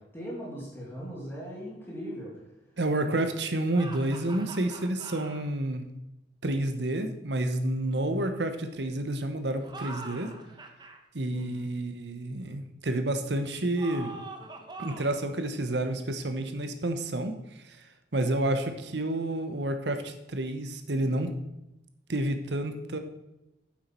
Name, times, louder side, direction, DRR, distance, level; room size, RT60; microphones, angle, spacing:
voice 1, 0.0-2.4 11.3-11.7, equal, 15° left, -4 dB, 2.2 m, -39 dB
voice 2, 2.8-5.8 6.4-10.3 11.1-14.1 14.8-17.3 18.1-21.3 22.1-23.0, right 1 dB, 70° right, 7 dB, 1.1 m, -29 dB
sound 1, 3.7-5.4 9.5-11.0 13.8-15.2, right 2 dB, 25° right, 1.1 m, -43 dB
9.4 x 7.5 x 4.5 m, 0.93 s
head